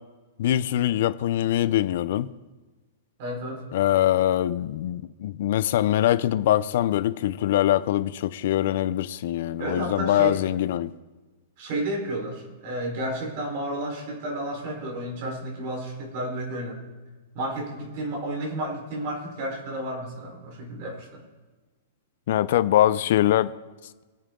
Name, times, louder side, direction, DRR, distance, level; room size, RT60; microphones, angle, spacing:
voice 1, 0.4-2.3 3.7-10.9 22.3-23.5, left 12 dB, 55° left, 0.6 m, -23 dB
voice 2, 3.2-3.6 9.6-10.4 11.6-16.8 17.3-21.2, right 1 dB, 40° right, 4.4 m, -32 dB
24.5 x 8.9 x 3.9 m
hypercardioid pair, 165°, 0 cm